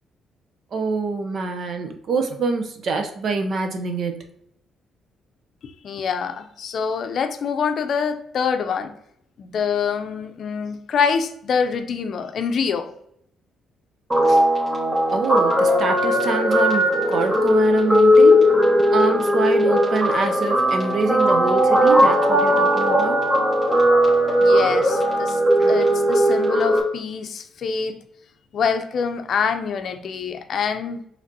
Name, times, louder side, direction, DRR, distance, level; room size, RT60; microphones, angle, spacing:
voice 1, 0.7-4.2 14.3-14.4 15.1-18.5 18.9-23.2 25.6-25.8, right 4 dB, 55° right, 5 dB, 0.7 m, -25 dB
voice 2, 5.6-8.9 9.4-12.9 24.4-25.4 25.7-28.0 28.5-31.0, left 6 dB, 60° left, 8 dB, 0.5 m, -25 dB
Guitar, 14.1-26.8, equal, 20° right, 1.7 m, -18 dB
5.0 x 3.3 x 2.7 m, 0.73 s
cardioid pair, 90°, 0 cm